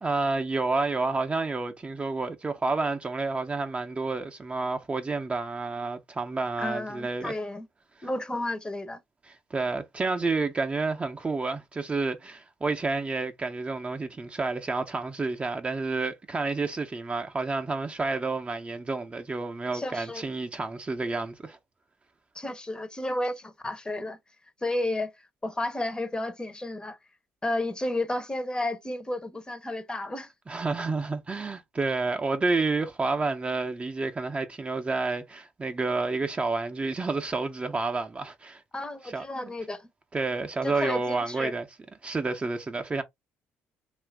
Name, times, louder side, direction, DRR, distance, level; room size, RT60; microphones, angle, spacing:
voice 1, 0.0-7.3 9.5-21.6 30.5-38.6 39.1-39.5 40.1-41.7 42.0-43.0, right 3 dB, 25° right, 0.6 m, -29 dB
voice 2, 6.6-7.7 8.0-9.0 19.7-20.3 22.3-24.2 24.6-25.1 25.4-27.0 27.4-30.3 38.7-39.9 40.6-41.5, left 1 dB, 15° left, 0.7 m, -32 dB
2.7 x 2.4 x 3.4 m
supercardioid pair, 75°, 5 cm